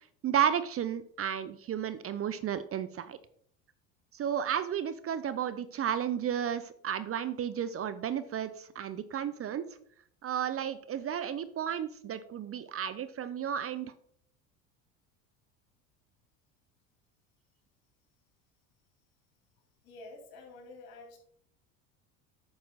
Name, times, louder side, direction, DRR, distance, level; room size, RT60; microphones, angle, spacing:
voice 1, 0.2-3.2 4.1-9.6 10.2-13.9, right 9 dB, 35° right, 13 dB, 0.6 m, -33 dB
voice 2, 19.8-21.2, left 2 dB, 60° left, 2 dB, 3.4 m, -49 dB
9.5 x 6.3 x 4.0 m, 0.63 s
hypercardioid pair, 80°, 41 cm